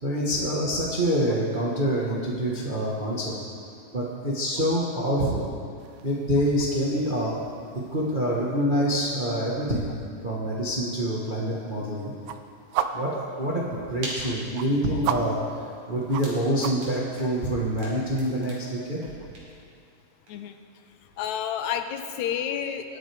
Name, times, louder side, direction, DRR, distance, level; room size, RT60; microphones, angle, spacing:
voice 1, 0.0-3.4 3.9-5.5 6.0-7.4 7.7-9.9 10.2-12.1 12.9-19.0, equal, 40° right, -5 dB, 0.7 m, -26 dB
sound 1, 5.8-17.0, right 8 dB, 85° right, 2.0 m, -38 dB
sound 2, 13.6-20.6, right 1 dB, 65° right, 4.0 m, -44 dB
voice 2, 21.2-23.0, left 9 dB, 80° left, 8 dB, 1.9 m, -31 dB
21.0 x 8.9 x 3.4 m, 2.3 s
omnidirectional pair, 3.4 m